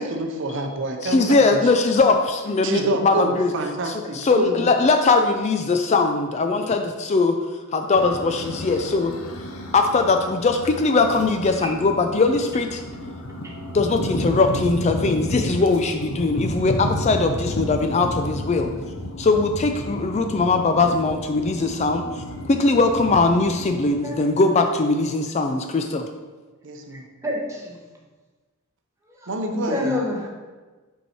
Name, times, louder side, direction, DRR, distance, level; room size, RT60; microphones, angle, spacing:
voice 1, 0.0-1.6 2.6-4.7 26.6-27.1 29.3-30.0, right 2 dB, 55° right, 4 dB, 0.7 m, -27 dB
voice 2, 1.0-3.5 3.9-7.4 7.7-9.1 9.7-12.8 13.7-18.7 19.2-26.1, left 3 dB, 30° left, 6 dB, 0.3 m, -20 dB
sound 1, 7.9-23.9, equal, 70° left, 0.8 m, -32 dB
voice 3, 27.2-27.8 29.2-30.3, left 1 dB, 15° right, -1 dB, 0.9 m, -28 dB
5.5 x 4.7 x 4.3 m, 1.3 s
head